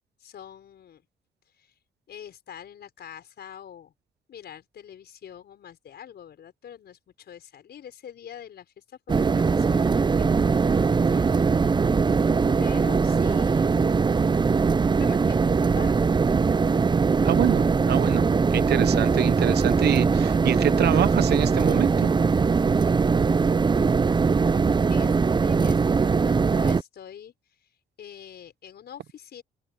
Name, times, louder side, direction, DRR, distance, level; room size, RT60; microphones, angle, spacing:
voice 1, 0.2-1.1 1.5-1.7 2.1-3.9 4.3-11.3 12.6-13.9 15.0-16.1 24.9-27.7 28.0-29.4, left 9 dB, 70° left, 5.2 m, -45 dB
sound 1, 9.1-26.8, right 5 dB, 25° right, 0.5 m, -21 dB
voice 2, 17.2-22.1, right 11 dB, 70° right, 0.9 m, -26 dB
open air
supercardioid pair, 65°, 18 cm